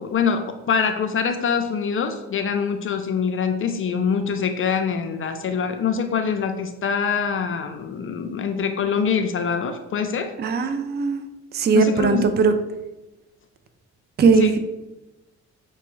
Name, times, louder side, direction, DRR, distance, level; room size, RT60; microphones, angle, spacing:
voice 1, 0.0-10.3 11.7-12.3 14.4-14.5, left 6 dB, 45° left, 6 dB, 0.4 m, -24 dB
voice 2, 10.4-11.2 11.5-12.5 14.2-14.6, right 5 dB, 35° right, 8 dB, 0.4 m, -19 dB
5.8 x 2.3 x 3.1 m, 1.0 s
cardioid pair, 90°, 30 cm